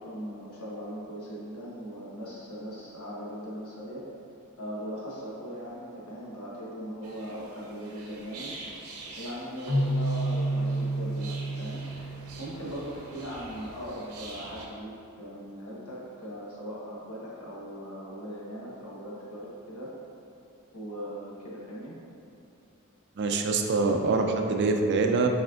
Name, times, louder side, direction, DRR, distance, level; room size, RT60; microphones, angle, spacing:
voice 1, 0.0-4.0 4.6-8.5 9.2-11.8 12.4-19.9 20.7-21.9, equal, 90° left, -6 dB, 1.1 m, -39 dB
sound 1, 7.0-14.7, right 2 dB, 90° right, 0.6 m, -45 dB
Keyboard (musical), 9.7-12.6, right 1 dB, 30° left, 0.6 m, -29 dB
voice 2, 23.2-25.3, right 3 dB, 50° right, 4 dB, 0.4 m, -24 dB
4.9 x 4.2 x 2.4 m, 2.7 s
head